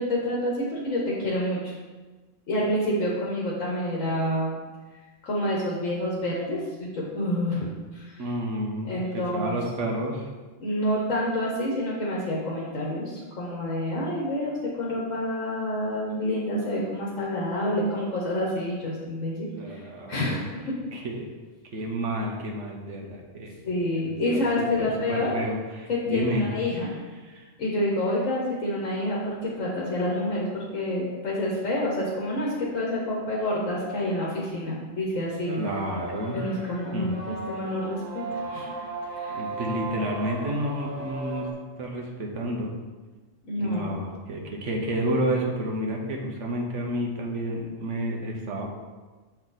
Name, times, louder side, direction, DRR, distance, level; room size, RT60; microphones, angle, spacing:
voice 1, 0.0-1.7 2.5-4.6 5.2-8.2 8.9-9.6 10.6-19.8 20.1-20.8 23.6-25.3 25.9-27.0 27.6-35.6 36.3-38.7 39.1-39.4 43.5-43.9, left 1 dB, 80° left, -4 dB, 1.5 m, -28 dB
voice 2, 8.2-10.3 19.5-20.3 20.9-21.3 21.7-23.5 23.9-26.5 27.2-27.5 35.6-36.4 36.9-37.4 39.3-41.5 41.8-42.7 43.6-48.7, right 1 dB, 70° right, 0 dB, 1.3 m, -30 dB
sound 1, 35.5-41.5, right 2 dB, 85° right, 1.8 m, -36 dB
6.9 x 4.3 x 4.0 m, 1.3 s
omnidirectional pair, 1.3 m